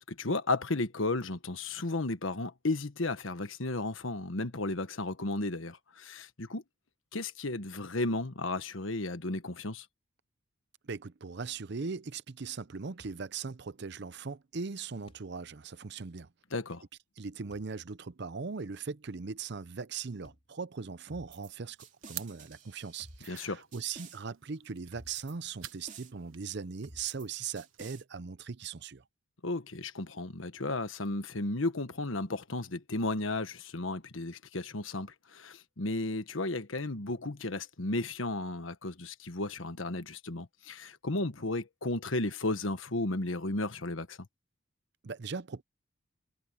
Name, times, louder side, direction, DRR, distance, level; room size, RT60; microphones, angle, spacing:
voice 1, 0.1-6.6 7.1-9.9 16.5-16.8 23.3-23.6 29.4-44.2, left 2 dB, 80° left, 1.4 m, -34 dB
voice 2, 10.8-16.3 17.2-21.8 22.1-29.0 45.0-45.6, right 5 dB, 55° right, 0.6 m, -39 dB
sound 1, 13.0-13.3 15.1-15.3 17.5-17.8 18.4-18.5 20.2-20.7, equal, 30° left, 4.8 m, -59 dB
sound 2, 21.1-21.5 21.8-23.4 23.7-24.2 24.9-25.3 25.6-26.1 26.8-27.3 27.6-28.0, right 4 dB, 40° right, 2.9 m, -51 dB
sound 3, 21.4-27.8, right 12 dB, 85° right, 1.3 m, -51 dB
head